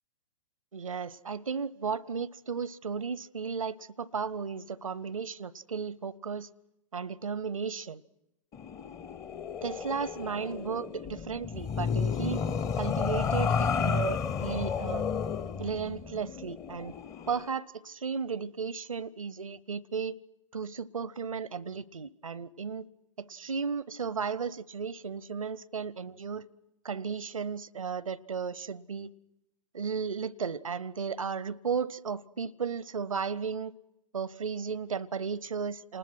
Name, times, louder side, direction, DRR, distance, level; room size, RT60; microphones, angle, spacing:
voice 1, 0.7-6.5 6.9-8.0 9.6-12.4 12.8-15.1 15.6-16.9 17.3-20.1 20.5-22.9 23.2-26.4 26.8-29.1 29.7-33.7 34.1-36.0, right 6 dB, 70° right, 0.8 m, -34 dB
sound 1, 8.5-17.5, left 6 dB, 20° left, 0.7 m, -32 dB
29.0 x 20.0 x 6.2 m
figure-of-eight pair, 110°, 18 cm